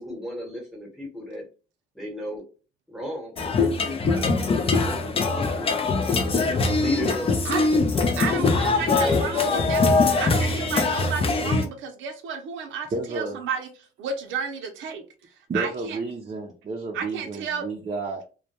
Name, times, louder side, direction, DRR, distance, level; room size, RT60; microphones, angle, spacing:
voice 1, 0.0-1.4 1.9-2.4 2.9-5.7 6.0-7.6 8.3-10.0, left 1 dB, ahead, 0 dB, 0.9 m, -35 dB
sound 1, 3.4-11.7, left 3 dB, 30° left, 0.4 m, -22 dB
voice 2, 8.2-9.9 10.2-13.7 14.0-15.0 15.5-16.0 16.9-17.6, right 6 dB, 90° right, 5 dB, 0.6 m, -32 dB
voice 3, 10.4-10.8 12.9-13.4 15.5-18.3, right 3 dB, 35° right, 1 dB, 0.5 m, -32 dB
2.2 x 2.1 x 2.7 m, 0.34 s
cardioid pair, 120°, 19 cm